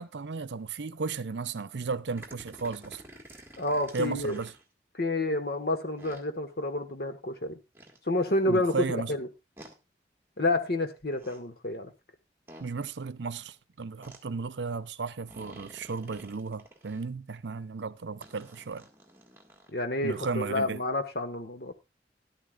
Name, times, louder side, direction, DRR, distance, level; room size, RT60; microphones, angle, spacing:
voice 1, 0.0-3.0 3.9-4.5 8.5-9.1 12.6-18.9 20.0-20.8, right 4 dB, 85° right, 0.6 m, -34 dB
sound 1, 2.2-4.6 6.0-6.2 7.7-8.0 9.6-9.7 11.0-11.4 12.5-12.7 14.0-14.2 15.3-17.0 18.2-19.7, right 1 dB, 15° right, 1.7 m, -50 dB
voice 2, 3.6-4.4 4.9-7.6 8.0-9.3 10.4-11.9 19.7-21.7, left 2 dB, 60° left, 1.4 m, -29 dB
13.5 x 12.0 x 2.4 m
head